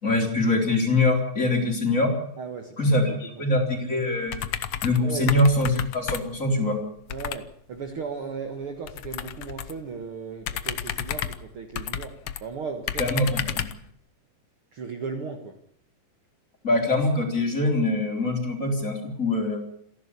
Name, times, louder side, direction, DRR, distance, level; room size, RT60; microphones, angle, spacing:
voice 1, 0.0-2.1 2.8-4.4 4.8-6.8 13.0-13.6 16.6-19.6, left 2 dB, 20° left, 2 dB, 4.1 m, -23 dB
voice 2, 2.4-2.9 3.3-3.6 5.0-5.3 7.1-13.6 14.7-15.5, right 5 dB, 50° right, 6 dB, 1.9 m, -36 dB
sound 1, 4.3-5.0 5.3-6.5 7.1-7.4 8.9-9.8 10.4-12.4 12.9-13.8, left 10 dB, 80° left, 1.4 m, -32 dB
28.5 x 11.5 x 8.4 m, 0.67 s
omnidirectional pair, 4.2 m